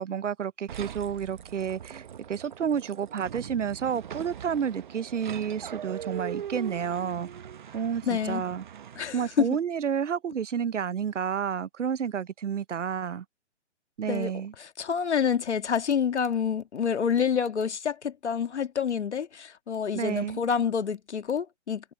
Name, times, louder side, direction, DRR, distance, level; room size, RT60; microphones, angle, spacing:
voice 1, 0.0-7.3 7.7-8.6 9.1-13.2 14.0-14.5 19.9-20.4, right 7 dB, 85° right, 0.9 m, -30 dB
sound 1, 0.7-9.4, right 9 dB, 40° right, 0.9 m, -41 dB
voice 2, 8.1-8.4 9.0-9.5 14.1-14.3 14.6-21.9, left 7 dB, 70° left, 2.0 m, -28 dB
hypercardioid pair, 155°, 35 cm